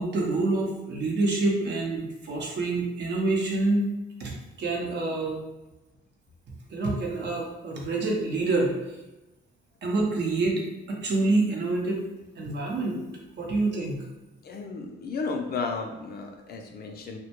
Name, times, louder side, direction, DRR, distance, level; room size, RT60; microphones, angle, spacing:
voice 1, 0.0-3.9 4.2-4.3 4.6-5.4 6.7-8.7 9.8-10.6 10.9-12.0 12.4-13.0 13.4-14.0, right 2 dB, 60° right, -1 dB, 0.7 m, -26 dB
voice 2, 14.4-17.2, left 4 dB, 50° left, 3 dB, 0.4 m, -33 dB
2.1 x 2.1 x 2.8 m, 1.0 s
cardioid pair, 90°, 20 cm